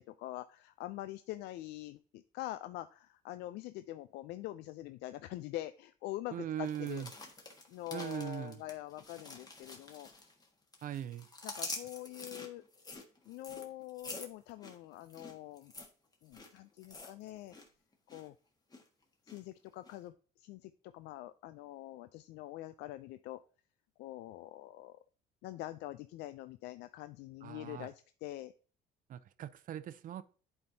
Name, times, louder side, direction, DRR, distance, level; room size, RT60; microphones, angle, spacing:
voice 1, 0.0-7.0 7.7-10.1 11.4-12.6 13.3-15.7 16.2-17.6 18.1-18.3 19.2-23.4 24.0-25.0 25.4-28.5, left 15 dB, 85° left, 0.4 m, -45 dB
voice 2, 6.3-7.1 7.9-8.6 10.8-11.3 27.4-27.9 29.1-30.2, right 10 dB, 55° right, 0.6 m, -40 dB
sound 1, 6.7-10.5 10.7-17.7 17.9-18.3 18.7-19.4 19.9-20.0, left 2 dB, 25° left, 1.4 m, -47 dB
10.5 x 4.4 x 2.7 m
cardioid pair, 110°, 17 cm